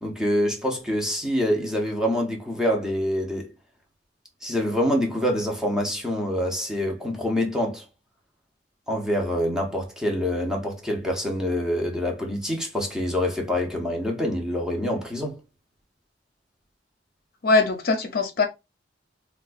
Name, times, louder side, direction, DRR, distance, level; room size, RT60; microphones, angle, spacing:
voice 1, 0.0-3.5 4.4-7.8 8.9-15.4, equal, 5° right, 0.8 m, -26 dB
voice 2, 17.4-18.5, left 3 dB, 55° left, 0.7 m, -21 dB
3.8 x 2.3 x 2.5 m
head